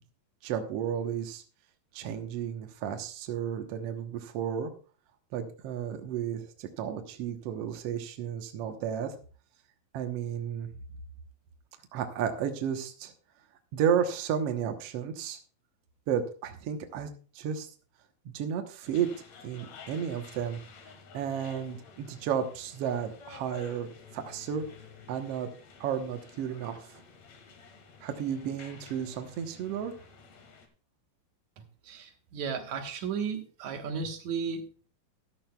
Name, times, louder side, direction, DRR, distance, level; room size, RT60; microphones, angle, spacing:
voice 1, 0.4-1.4 1.9-4.7 5.3-9.1 9.9-10.7 11.9-13.1 13.7-15.4 16.1-17.1 17.3-17.7 18.2-19.1 19.4-20.6 21.1-24.6 25.1-25.5 25.8-27.0 28.0-29.9, right 8 dB, 85° right, 5 dB, 1.3 m, -32 dB
sound 1, 18.8-30.7, left 5 dB, 55° left, 2.3 m, -52 dB
voice 2, 31.6-34.9, right 6 dB, 60° right, 4 dB, 2.3 m, -35 dB
13.5 x 12.5 x 2.3 m, 0.39 s
omnidirectional pair, 4.4 m